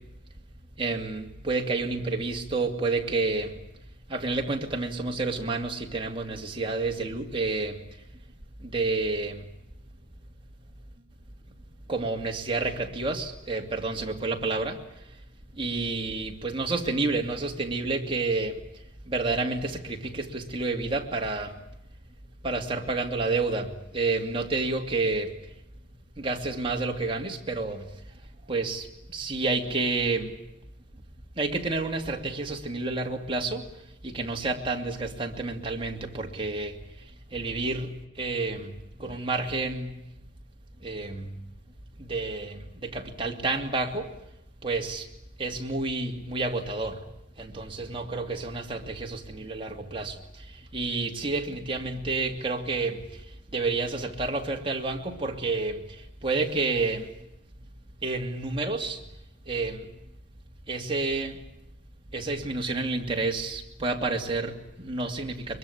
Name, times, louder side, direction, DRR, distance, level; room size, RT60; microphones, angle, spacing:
voice 1, 0.8-3.6 4.1-7.8 8.6-9.5 11.9-14.8 15.6-18.6 19.1-21.6 22.4-25.3 26.2-27.9 28.5-30.3 31.4-33.6 34.0-36.8 37.3-38.7 39.0-40.0 40.8-41.4 42.0-44.1 44.6-45.1 45.4-47.0 47.4-53.0 53.5-57.1 58.0-59.0 59.5-59.9 60.7-61.4 62.1-65.6, right 3 dB, 25° right, 2 dB, 2.6 m, -29 dB
23.5 x 23.0 x 8.5 m, 0.85 s
head